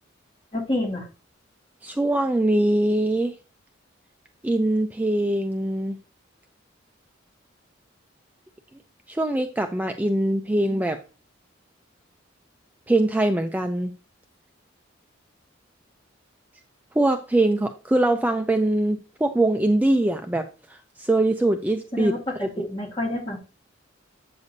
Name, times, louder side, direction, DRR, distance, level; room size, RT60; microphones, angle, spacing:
voice 1, 0.5-1.1 21.9-23.4, left 1 dB, 30° left, -3 dB, 2.0 m, -28 dB
voice 2, 1.8-3.3 4.4-6.0 9.1-11.0 12.9-13.9 17.0-22.1 22.4-22.5, right 1 dB, 10° right, 6 dB, 0.4 m, -22 dB
8.1 x 6.7 x 2.7 m, 0.34 s
head